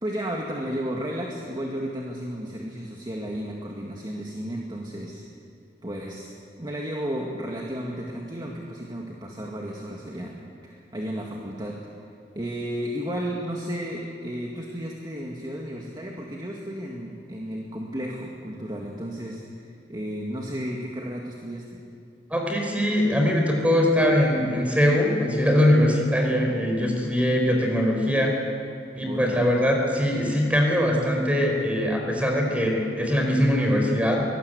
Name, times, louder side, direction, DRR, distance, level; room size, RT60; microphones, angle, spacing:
voice 1, 0.0-5.2 5.8-6.3 6.6-10.3 10.6-11.8 12.3-21.8 29.0-29.5, equal, 25° right, -1 dB, 2.1 m, -33 dB
voice 2, 22.3-28.3 28.9-34.2, equal, 10° right, 1 dB, 4.6 m, -22 dB
24.0 x 19.5 x 8.2 m, 2.5 s
head